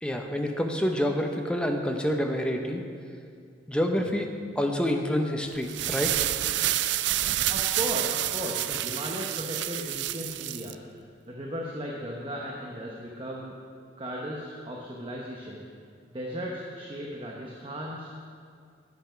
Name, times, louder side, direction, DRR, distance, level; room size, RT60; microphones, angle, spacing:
voice 1, 0.0-2.8 3.7-4.3 4.6-6.2, equal, 5° left, 3 dB, 0.7 m, -27 dB
sound 1, 5.6-10.7, right 14 dB, 70° right, 0.3 m, -28 dB
voice 2, 7.5-13.5 14.0-15.7 16.1-18.2, equal, 30° right, -2 dB, 0.9 m, -36 dB
9.0 x 8.0 x 5.6 m, 2.2 s
head